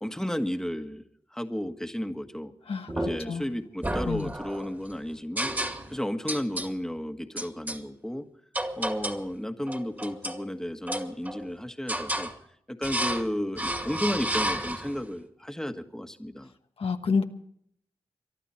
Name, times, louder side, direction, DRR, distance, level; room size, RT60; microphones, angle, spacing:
voice 1, 0.0-1.0 1.3-2.5 2.9-5.5 5.9-8.3 8.8-12.3 12.7-16.5, equal, 5° left, 7 dB, 1.6 m, -33 dB
voice 2, 2.7-3.5 4.1-4.3 16.8-17.2, left 5 dB, 80° left, 5 dB, 1.3 m, -29 dB
sound 1, 2.9-3.4 3.8-4.7 5.4-6.0 6.3-6.7 7.4-7.8 8.5-9.3 9.7-10.4 10.9-11.5 11.9-12.3 12.8-13.3 13.6-15.0, right 1 dB, 20° right, 2.2 m, -31 dB
24.0 x 11.5 x 4.4 m, 0.69 s
cardioid pair, 55°, 10 cm